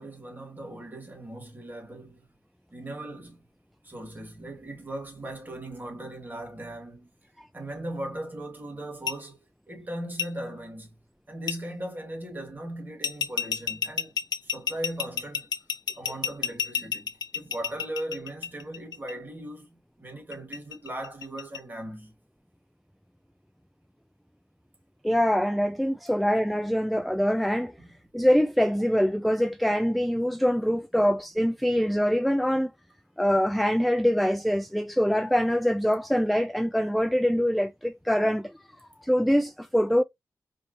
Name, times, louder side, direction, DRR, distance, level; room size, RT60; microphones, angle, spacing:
voice 1, 0.0-2.2 2.7-3.4 3.8-7.1 7.5-9.4 9.7-11.0 11.3-14.2 14.4-15.5 16.0-19.7 20.0-22.1 27.8-27.9 30.9-31.0, right 1 dB, 30° right, 2.0 m, -38 dB
Glass and metal, 9.1-9.2 10.2-10.3 11.5-11.6 13.0-19.1 20.3-21.6, left 7 dB, 85° left, 0.6 m, -30 dB
voice 2, 25.0-27.7 28.1-32.7 33.2-38.5 39.0-40.0, equal, ahead, 0.3 m, -24 dB
4.5 x 2.7 x 2.8 m
cardioid pair, 65°, 7 cm